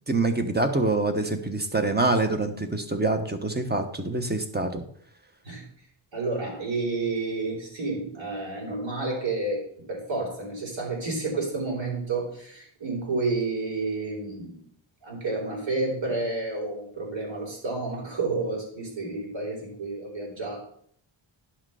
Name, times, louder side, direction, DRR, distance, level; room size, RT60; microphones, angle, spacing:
voice 1, 0.1-4.8, right 2 dB, 20° right, 6 dB, 1.0 m, -25 dB
voice 2, 6.1-9.6 9.9-14.6 15.0-20.6, right 3 dB, 70° right, -2 dB, 4.0 m, -30 dB
10.0 x 5.9 x 5.6 m, 0.63 s
wide cardioid pair, 140°, 47 cm